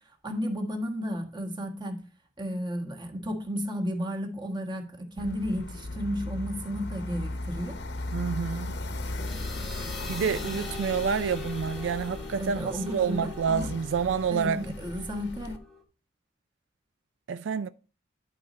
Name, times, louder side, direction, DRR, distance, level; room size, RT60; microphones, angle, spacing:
voice 1, 0.2-2.0 2.4-7.8 12.4-13.7 14.3-15.6, equal, 25° right, 1.4 m, -33 dB
sound 1, 5.2-15.6, left 2 dB, 65° left, 0.9 m, -37 dB
voice 2, 8.1-8.8 10.1-14.6 17.3-17.7, right 6 dB, 85° right, 0.4 m, -28 dB
sound 2, 8.8-15.8, left 3 dB, ahead, 0.9 m, -43 dB
11.0 x 4.2 x 5.1 m
head